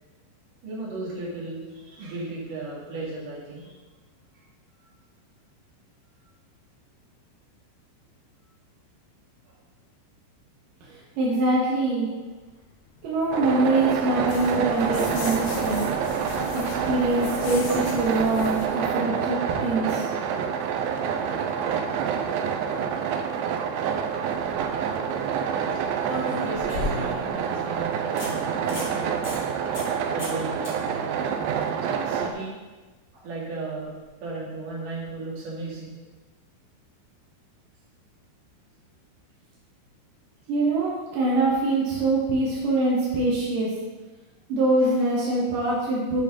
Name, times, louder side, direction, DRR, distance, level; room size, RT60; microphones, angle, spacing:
voice 1, 0.6-3.7 9.5-9.6 10.9-11.0 25.7-29.3 29.8-32.5 33.1-33.9 34.2-35.9 44.8-45.0, right 2 dB, 50° right, -5 dB, 3.0 m, -36 dB
voice 2, 11.2-12.1 13.0-15.9 16.5-20.1 40.5-43.7 44.5-46.2, right 2 dB, 65° right, -6 dB, 2.2 m, -24 dB
sound 1, 12.7-18.7, left 4 dB, 80° left, 3.4 m, -37 dB
sound 2, 13.3-32.3, right 7 dB, 85° right, 2.8 m, -27 dB
sound 3, 24.6-24.7 26.0-27.3 27.7-27.8 28.2-28.3 28.6-28.9 29.2-29.4 29.7-29.9 30.2-30.4 30.6-30.7 33.8-33.9, left 1 dB, 30° left, 1.4 m, -34 dB
10.0 x 6.5 x 3.7 m, 1.3 s
omnidirectional pair, 5.8 m